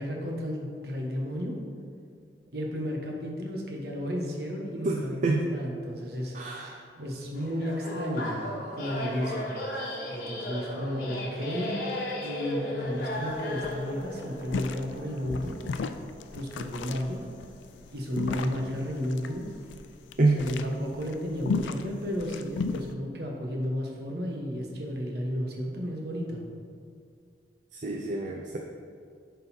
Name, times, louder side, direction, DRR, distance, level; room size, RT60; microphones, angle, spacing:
voice 1, 0.0-1.5 2.5-6.6 7.0-8.4 8.7-9.5 10.1-11.8 12.2-15.5 16.3-17.2 17.9-19.5 20.3-26.4, equal, 60° right, 0 dB, 1.3 m, -33 dB
voice 2, 4.8-5.5 6.3-6.8 20.2-20.5 27.7-28.6, right 2 dB, 40° right, 1 dB, 0.5 m, -27 dB
sound 1, 7.3-16.6 17.3-17.4 18.5-18.7 19.2-19.4, left 1 dB, 50° left, 1.3 m, -36 dB
sound 2, 12.8-12.9 13.2-13.4 13.6-22.9, left 4 dB, 85° left, 0.4 m, -35 dB
11.0 x 4.0 x 4.3 m, 2.2 s
head